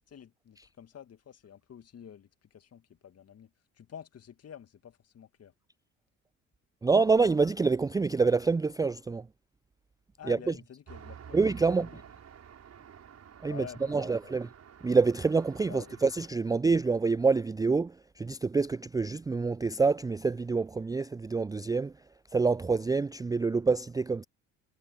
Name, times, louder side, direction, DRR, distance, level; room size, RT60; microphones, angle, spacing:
voice 1, 0.1-5.5 10.2-11.4 11.8-12.0 13.5-14.4 15.7-16.0, left 8 dB, 40° left, 2.3 m, -49 dB
voice 2, 6.8-9.3 10.3-10.5 11.3-11.9 13.4-14.5 14.8-21.9 22.3-24.2, right 4 dB, 10° right, 0.5 m, -27 dB
Traffic noise roadway noise, 10.9-16.3, right 8 dB, 40° right, 6.5 m, -50 dB
figure-of-eight pair, 55°, 39 cm